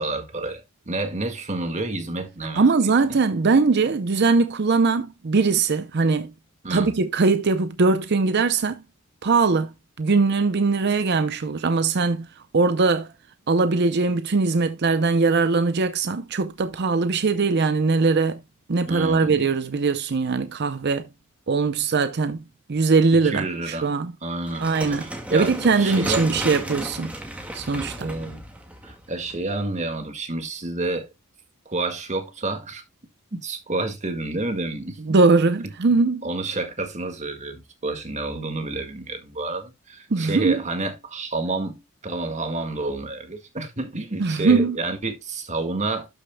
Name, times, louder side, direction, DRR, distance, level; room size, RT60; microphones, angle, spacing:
voice 1, 0.0-2.6 3.1-3.2 6.6-6.9 18.8-19.4 23.2-23.8 24.2-26.3 28.0-28.4 28.8-31.1 31.6-32.8 33.3-35.2 36.2-46.1, right 2 dB, 35° right, 1.8 m, -29 dB
voice 2, 2.5-6.3 6.7-8.8 9.2-9.7 10.0-12.3 12.5-13.1 13.5-18.4 18.7-21.0 21.5-22.4 22.7-24.1 24.6-25.0 25.3-27.1 27.5-28.1 35.1-36.3 40.1-40.6 44.2-44.8, right 4 dB, 50° right, 0.6 m, -21 dB
sound 1, 24.5-29.6, right 1 dB, 5° right, 1.8 m, -33 dB
12.0 x 6.7 x 2.2 m
head